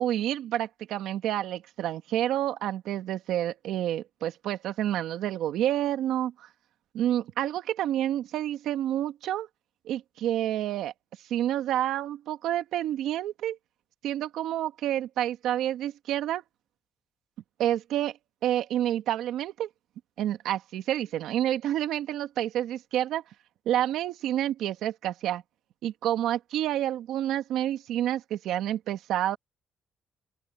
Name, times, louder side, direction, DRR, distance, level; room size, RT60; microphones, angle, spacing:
voice 1, 0.0-6.5 6.9-9.5 9.9-10.9 11.3-13.6 14.0-16.4 17.6-18.2 18.4-19.7 20.2-23.2 23.7-25.4 25.8-29.4, right 12 dB, 85° right, 1.9 m, -29 dB
open air
cardioid pair, 90°, 0 cm